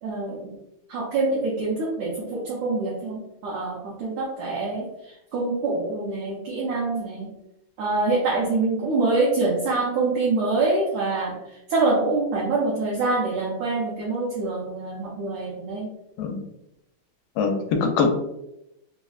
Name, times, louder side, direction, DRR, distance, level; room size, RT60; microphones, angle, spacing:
voice 1, 0.0-0.5 0.9-7.3 7.8-15.9, right 3 dB, 85° right, -4 dB, 1.5 m, -25 dB
voice 2, 17.4-18.2, left 4 dB, 85° left, 4 dB, 2.2 m, -23 dB
5.7 x 2.0 x 2.3 m, 0.85 s
omnidirectional pair, 4.0 m